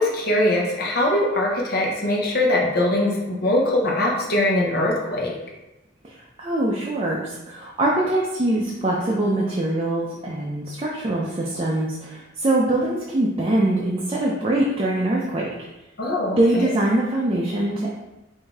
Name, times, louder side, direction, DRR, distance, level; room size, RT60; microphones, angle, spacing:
voice 1, 0.0-5.4 16.0-16.7, left 1 dB, 50° left, -2 dB, 0.8 m, -22 dB
voice 2, 6.0-15.5 16.4-17.9, right 1 dB, 25° right, -4 dB, 0.5 m, -23 dB
4.9 x 2.7 x 3.5 m, 1.0 s
head